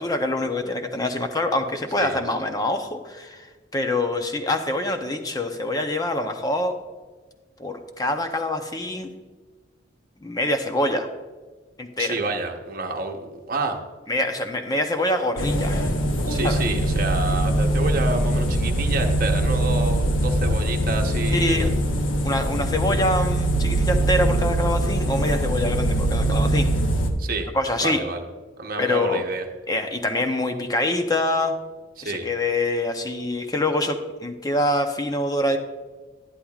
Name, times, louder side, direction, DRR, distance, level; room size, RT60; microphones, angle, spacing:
voice 1, 0.0-3.5 3.7-6.8 7.6-9.1 10.2-11.1 11.8-12.2 14.1-15.9 16.4-16.6 21.3-21.7 22.2-26.7 27.5-28.0 28.8-29.2 29.7-31.5 32.0-35.6, left 1 dB, 20° left, 5 dB, 0.7 m, -25 dB
voice 2, 12.0-13.2 13.5-13.8 16.3-21.7 27.2-27.5 27.8-28.2 28.6-29.4 32.0-32.3, right 3 dB, 45° right, 3 dB, 0.9 m, -29 dB
sound 1, 15.4-27.1, right 1 dB, 75° left, 1.0 m, -22 dB
11.5 x 10.5 x 2.4 m, 1.3 s
head